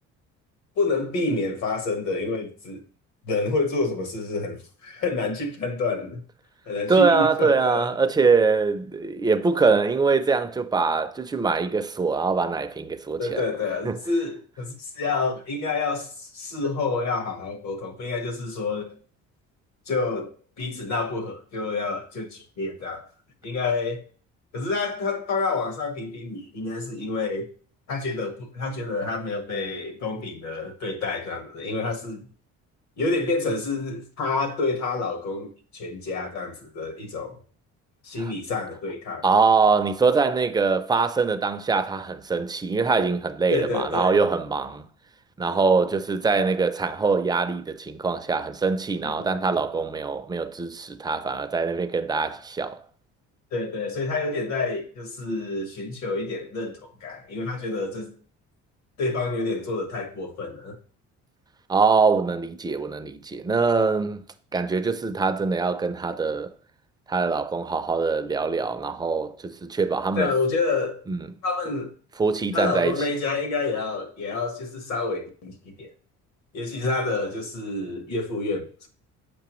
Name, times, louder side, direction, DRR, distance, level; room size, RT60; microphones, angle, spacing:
voice 1, 0.8-2.8 3.2-6.2 6.6-7.9 13.2-18.9 19.9-23.0 23.4-24.0 24.5-27.4 27.9-32.3 33.0-37.4 38.0-39.2 43.5-44.2 49.0-49.6 53.5-58.1 59.0-60.8 70.2-71.0 71.4-71.9 72.5-75.9 76.5-78.9, left 3 dB, 65° left, 1.4 m, -28 dB
voice 2, 6.9-13.4 13.9-14.0 39.2-44.8 45.4-52.8 61.7-64.2 64.5-66.5 67.1-70.3 71.1-71.2 72.2-73.0, right 4 dB, 15° right, 0.4 m, -23 dB
6.9 x 5.4 x 3.0 m
cardioid pair, 140°, 30 cm